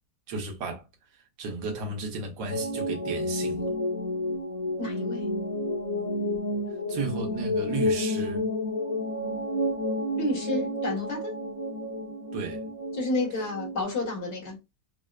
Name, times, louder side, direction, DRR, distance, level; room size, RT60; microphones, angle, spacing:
voice 1, 0.3-0.9 1.1-3.7 6.9-8.4 12.3-12.6, right 3 dB, 85° right, 1.5 m, -34 dB
sound 1, 2.5-13.8, left 1 dB, 35° left, 0.7 m, -30 dB
voice 2, 4.8-5.3 10.2-11.4 12.9-14.6, left 2 dB, 70° left, 2.1 m, -30 dB
4.7 x 2.1 x 2.4 m
omnidirectional pair, 1.8 m